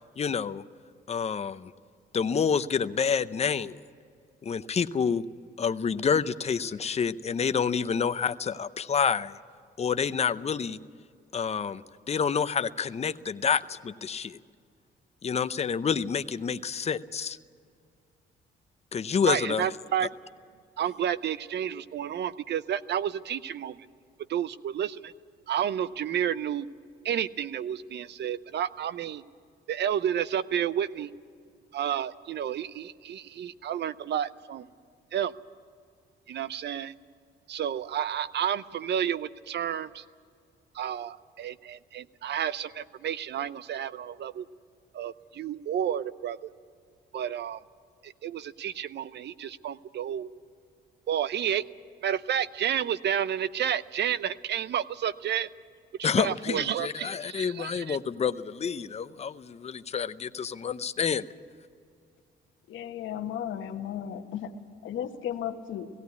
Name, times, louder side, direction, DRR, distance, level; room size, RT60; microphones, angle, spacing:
voice 1, 0.2-0.6 1.1-1.7 2.1-3.8 4.4-5.2 5.6-9.4 9.8-10.8 11.3-14.4 15.2-17.4 18.9-19.7 56.0-61.2, left 6 dB, 35° left, 12 dB, 0.7 m, -28 dB
voice 2, 19.2-20.1 20.8-23.9 24.3-25.1 25.5-26.7 27.0-29.2 29.7-31.1 31.7-34.7 35.1-35.3 36.3-36.9 37.5-40.0 40.7-44.5 44.9-46.5 47.1-47.6 48.0-50.3 51.1-51.6 52.0-55.5 56.0-58.0, right 9 dB, 60° right, 16 dB, 0.6 m, -31 dB
voice 3, 62.7-64.5 64.8-65.9, left 9 dB, 75° left, 5 dB, 1.3 m, -34 dB
17.0 x 16.5 x 9.5 m, 2.2 s
cardioid pair, 90°, 20 cm